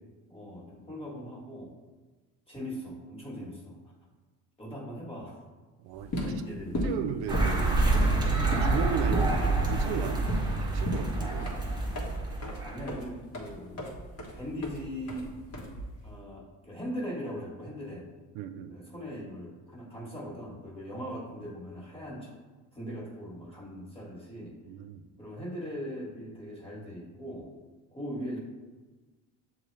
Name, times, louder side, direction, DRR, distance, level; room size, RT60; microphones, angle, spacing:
voice 1, 0.3-1.7 2.5-3.8 4.6-5.4 6.2-6.9 12.6-13.9 14.3-15.3 16.0-18.0 18.7-22.3 22.7-24.5 25.2-27.5 27.9-28.4, equal, 15° left, -3 dB, 1.5 m, -40 dB
voice 2, 5.8-6.1 6.8-7.7 8.6-10.2 10.6-11.6 18.3-18.8 24.7-25.0, right 8 dB, 85° right, 7 dB, 0.5 m, -35 dB
sound 1, 5.9-16.1, equal, 40° left, 1.2 m, -35 dB
sound 2, 7.3-12.9, right 2 dB, 10° right, 0.9 m, -28 dB
7.0 x 2.4 x 3.1 m, 1.3 s
cardioid pair, 100°, 37 cm